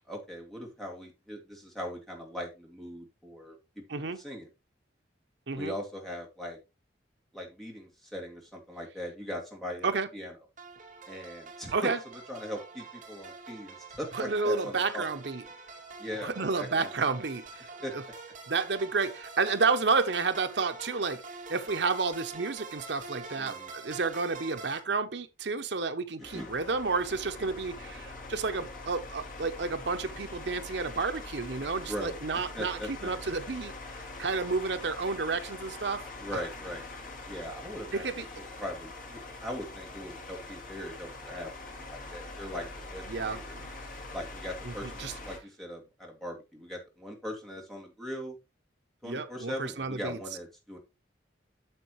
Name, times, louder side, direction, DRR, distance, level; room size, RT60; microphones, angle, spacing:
voice 1, 0.1-3.6 3.9-4.5 5.5-6.6 7.3-10.3 11.1-11.9 12.3-15.0 16.0-16.9 17.8-17.9 23.4-23.7 26.3-26.5 31.9-32.2 32.5-33.1 36.2-36.8 37.3-41.5 41.9-42.7 42.9-43.5 44.1-48.3 49.0-50.8, equal, ahead, 2.4 m, -40 dB
sound 1, 10.6-24.8, right 4 dB, 45° right, 2.5 m, -46 dB
voice 2, 14.1-15.4 16.2-17.7 17.9-18.0 18.5-21.2 21.5-33.7 34.2-36.0 36.3-36.4 37.9-38.2 43.1-43.7 44.6-45.1 49.0-50.2, right 4 dB, 70° right, 0.8 m, -31 dB
sound 2, 26.2-45.4, left 2 dB, 45° left, 2.1 m, -43 dB
9.0 x 7.2 x 3.1 m
head